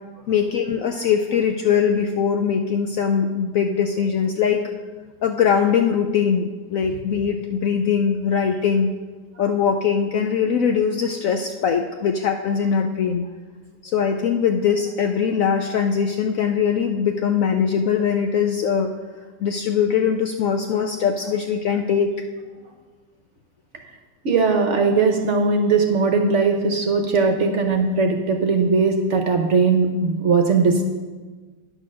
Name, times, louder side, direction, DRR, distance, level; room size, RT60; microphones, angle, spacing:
voice 1, 0.3-4.7 5.2-8.9 9.4-13.3 13.8-18.9 19.4-22.2, left 7 dB, 70° left, 5 dB, 0.8 m, -21 dB
voice 2, 24.2-30.8, right 4 dB, 55° right, 4 dB, 0.9 m, -19 dB
9.9 x 6.4 x 6.2 m, 1.4 s
omnidirectional pair, 1.9 m